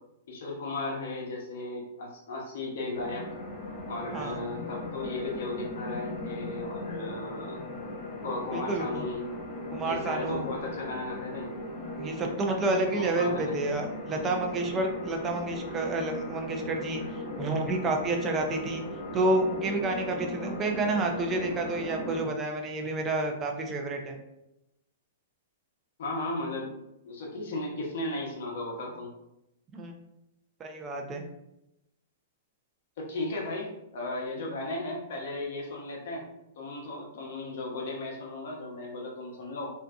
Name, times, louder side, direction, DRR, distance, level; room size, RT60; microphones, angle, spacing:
voice 1, 0.3-3.3 3.9-7.6 8.2-9.3 9.8-11.5 12.9-13.6 26.0-26.7 27.0-29.1 33.0-36.2 36.6-39.7, left 2 dB, 65° left, -1 dB, 0.8 m, -35 dB
sound 1, 2.9-22.2, left 1 dB, 35° left, 0.8 m, -38 dB
voice 2, 8.5-9.0 9.7-10.5 12.0-17.0 17.4-18.8 19.1-24.2 29.7-29.9 30.6-31.2, right 2 dB, 25° right, 2 dB, 0.5 m, -29 dB
2.6 x 2.4 x 2.3 m, 0.86 s
hypercardioid pair, 130°, 0 cm